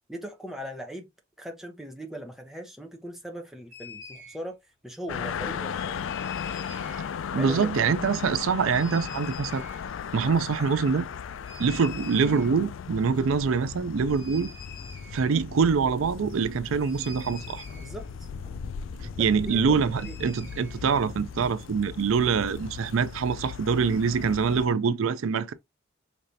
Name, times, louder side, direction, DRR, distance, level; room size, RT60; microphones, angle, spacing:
voice 1, 0.1-1.1 1.4-4.6 4.8-6.0 7.4-7.7 17.8-18.3 19.2-19.6 19.9-20.2, equal, ahead, 0.8 m, -39 dB
sound 1, 3.7-4.4 5.9-7.1 8.7-9.8 11.4-12.7 13.0-13.1 13.3-21.5, left 3 dB, 25° left, 2.5 m, -45 dB
sound 2, 5.1-24.7, left 7 dB, 75° left, 0.3 m, -37 dB
voice 2, 7.3-9.6 10.1-11.1 11.6-14.5 15.1-17.6 19.2-25.5, right 5 dB, 90° right, 0.4 m, -25 dB
5.2 x 3.2 x 2.7 m
head